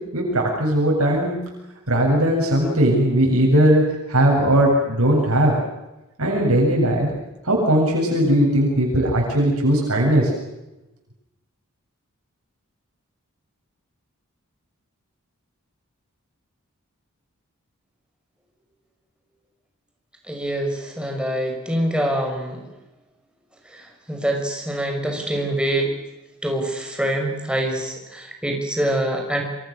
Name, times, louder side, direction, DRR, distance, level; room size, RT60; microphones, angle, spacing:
voice 1, 0.1-1.4 1.9-3.8 4.1-5.5 6.2-7.1 7.4-10.3, right 1 dB, 75° right, -2 dB, 7.8 m, -18 dB
voice 2, 20.3-22.6 23.7-25.9 26.4-29.4, right 1 dB, 5° right, 2 dB, 6.2 m, -25 dB
28.0 x 26.0 x 6.7 m, 0.96 s
head